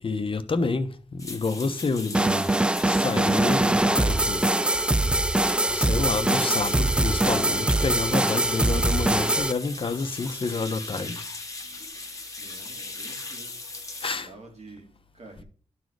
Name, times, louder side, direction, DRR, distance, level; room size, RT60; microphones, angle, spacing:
voice 1, 0.0-2.5 2.8-4.4 5.7-11.2 14.0-14.3, left 3 dB, 45° left, 1.1 m, -29 dB
sound 1, 1.2-14.1, left 3 dB, 25° left, 1.5 m, -39 dB
sound 2, 2.1-9.5, right 1 dB, 10° right, 0.3 m, -23 dB
voice 2, 12.4-13.6 14.1-15.4, right 2 dB, 60° right, 2.9 m, -48 dB
11.5 x 4.1 x 4.8 m
cardioid pair, 70°, 12 cm